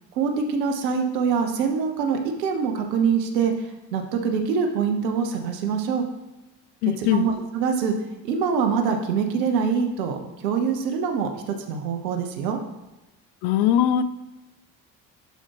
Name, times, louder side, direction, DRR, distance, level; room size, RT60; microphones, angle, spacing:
voice 1, 0.1-6.0 7.0-7.9 8.2-12.6, right 6 dB, 75° right, 4 dB, 1.1 m, -24 dB
voice 2, 6.8-7.3 13.4-14.0, left 10 dB, 50° left, 14 dB, 0.6 m, -20 dB
11.0 x 4.4 x 3.0 m, 1.0 s
hypercardioid pair, 60°, 50 cm